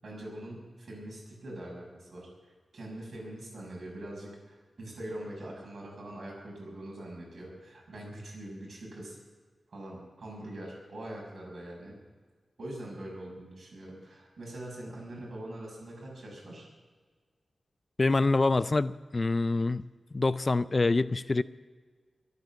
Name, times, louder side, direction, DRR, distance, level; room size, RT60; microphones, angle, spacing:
voice 1, 0.0-2.3 2.7-9.2 9.7-12.0 12.6-16.7, right 1 dB, 60° right, -2 dB, 6.7 m, -43 dB
voice 2, 18.0-19.8 20.1-21.4, left 3 dB, 35° left, 15 dB, 0.4 m, -26 dB
23.0 x 9.5 x 6.3 m, 1.5 s
wide cardioid pair, 105°, 0 cm